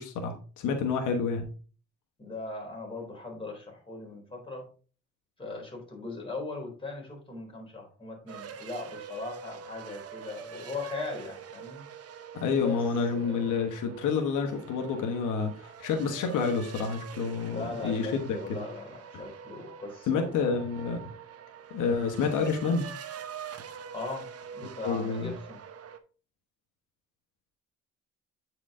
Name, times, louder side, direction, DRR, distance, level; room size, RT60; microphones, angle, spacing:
voice 1, 0.0-1.5 12.4-18.6 20.1-21.0 21.7-22.9 24.8-25.3, left 5 dB, 85° left, 3 dB, 1.2 m, -29 dB
voice 2, 2.2-4.7 5.4-11.8 12.6-12.8 13.1-13.5 17.5-20.3 23.9-24.3 24.5-25.6, left 3 dB, 15° left, -1 dB, 3.9 m, -39 dB
sound 1, 8.3-26.0, right 7 dB, 50° right, 0.9 m, -45 dB
8.6 x 4.9 x 3.6 m, 0.37 s
cardioid pair, 90°, 30 cm